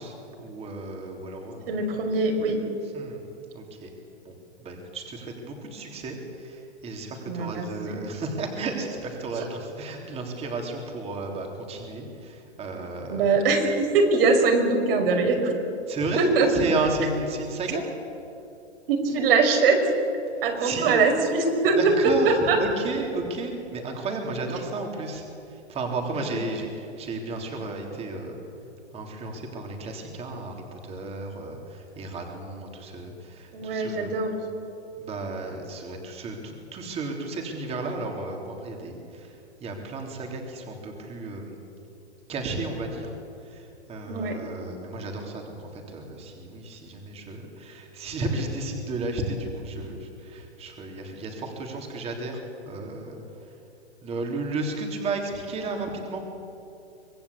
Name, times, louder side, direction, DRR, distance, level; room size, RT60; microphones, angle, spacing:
voice 1, 0.0-1.8 2.9-3.2 3.5-3.9 4.2-4.3 4.6-13.3 15.9-17.9 20.6-21.0 21.8-25.2 25.5-28.4 28.9-34.1 35.0-41.6 42.3-43.1 43.4-53.2 54.0-56.2, right 3 dB, 15° right, 2 dB, 3.4 m, -33 dB
voice 2, 1.7-2.6 7.3-8.1 9.4-9.5 13.1-15.5 16.2-16.5 18.9-19.8 20.4-21.8 22.2-22.6 26.2-26.3 33.5-34.3 44.1-44.4, right 4 dB, 50° right, 3 dB, 5.5 m, -22 dB
25.5 x 19.5 x 8.5 m, 2.8 s
hypercardioid pair, 150°, 35 cm